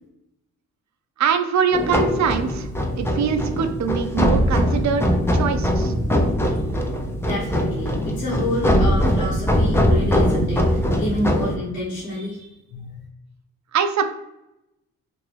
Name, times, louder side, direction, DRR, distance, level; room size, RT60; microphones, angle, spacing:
voice 1, 1.2-2.7 3.0-5.9 13.7-14.0, right 6 dB, 50° right, 7 dB, 0.5 m, -23 dB
sound 1, 1.7-11.6, equal, 5° left, 0.5 m, -21 dB
voice 2, 7.2-13.0, left 1 dB, 90° left, -8 dB, 1.1 m, -29 dB
2.9 x 2.6 x 3.1 m, 0.89 s
supercardioid pair, 65°, 36 cm